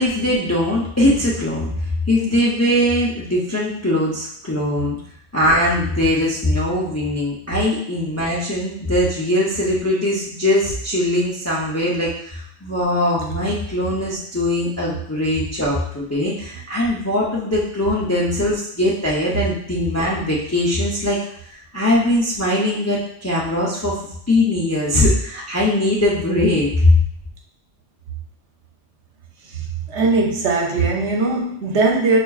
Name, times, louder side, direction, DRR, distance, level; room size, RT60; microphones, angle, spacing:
voice 1, 0.0-1.7 2.1-5.0 5.3-21.2 21.5-24.0 24.3-27.0, left 1 dB, 20° left, -5 dB, 0.4 m, -20 dB
voice 2, 29.9-32.2, right 3 dB, 75° right, 1 dB, 0.9 m, -19 dB
5.6 x 2.5 x 2.3 m, 0.68 s
omnidirectional pair, 1.2 m